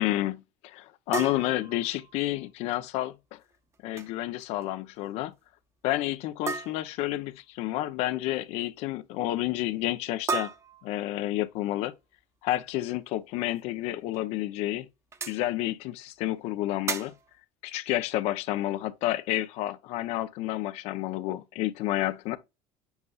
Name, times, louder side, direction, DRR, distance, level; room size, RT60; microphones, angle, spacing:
voice 1, 0.0-3.4 3.8-5.3 5.8-10.5 10.8-11.9 12.4-14.9 15.3-17.1 17.6-22.4, left 15 dB, 65° left, 0.6 m, -30 dB
sound 1, 1.1-2.5 3.7-4.1 4.4-4.7 4.9-5.0 6.5-7.1 10.3-11.4 13.5-13.6 14.1-14.2 15.1-15.4 16.9-17.3, right 4 dB, 25° right, 0.8 m, -35 dB
8.1 x 5.5 x 2.3 m
cardioid pair, 130°, 12 cm